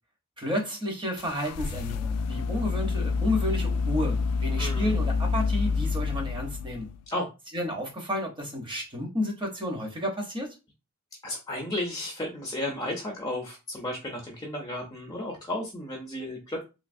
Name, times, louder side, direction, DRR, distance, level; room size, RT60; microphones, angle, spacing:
voice 1, 0.4-6.9 7.5-10.5, left 1 dB, 20° right, 0.8 m, -31 dB
sound 1, 1.2-7.1, left 4 dB, 80° left, 0.3 m, -28 dB
voice 2, 4.6-5.0 7.1-7.3 11.2-16.6, left 1 dB, 15° left, 0.5 m, -33 dB
3.1 x 2.7 x 2.6 m
head